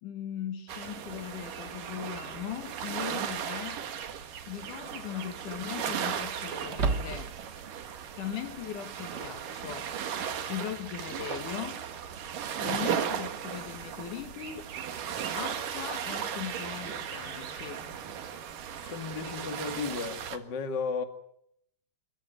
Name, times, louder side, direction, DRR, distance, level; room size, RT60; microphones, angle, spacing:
voice 1, 0.0-3.8 4.5-7.4 8.1-9.9 10.5-11.8 12.6-14.7 15.3-17.9, left 10 dB, 65° left, 2.8 m, -39 dB
sound 1, 0.7-20.4, right 8 dB, 70° right, 3.3 m, -36 dB
sound 2, 4.0-4.4 4.8-4.9 6.7-7.6, right 4 dB, 50° right, 1.2 m, -31 dB
voice 2, 18.8-21.0, left 5 dB, 35° left, 2.4 m, -34 dB
27.0 x 14.5 x 9.3 m
omnidirectional pair, 4.0 m